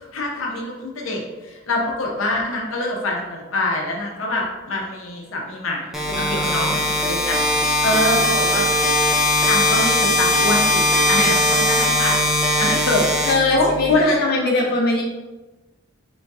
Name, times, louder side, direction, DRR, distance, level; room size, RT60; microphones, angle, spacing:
voice 1, 0.1-5.8 6.1-7.4 7.8-8.7 9.4-14.2, left 1 dB, 85° left, -1 dB, 0.6 m, -24 dB
sound 1, 5.9-13.9, left 1 dB, ahead, 0.5 m, -19 dB
voice 2, 6.1-6.8 11.2-11.4 13.2-15.0, left 2 dB, 50° left, -3 dB, 0.7 m, -22 dB
3.5 x 3.1 x 2.6 m, 1.2 s
head